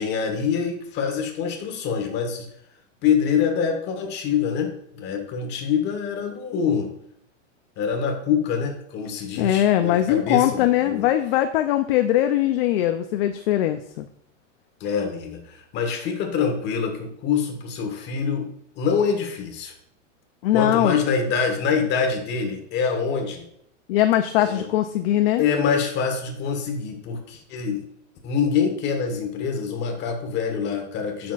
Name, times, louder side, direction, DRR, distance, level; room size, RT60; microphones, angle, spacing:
voice 1, 0.0-2.5 3.0-6.9 7.8-11.1 14.8-19.7 20.5-23.4 24.4-24.7 25.4-27.8 28.2-31.3, left 6 dB, 25° left, 3 dB, 1.3 m, -25 dB
voice 2, 9.4-14.1 20.4-21.0 23.9-25.4, left 13 dB, 50° left, 8 dB, 0.5 m, -21 dB
8.3 x 6.0 x 2.4 m, 0.73 s
supercardioid pair, 145°, 39 cm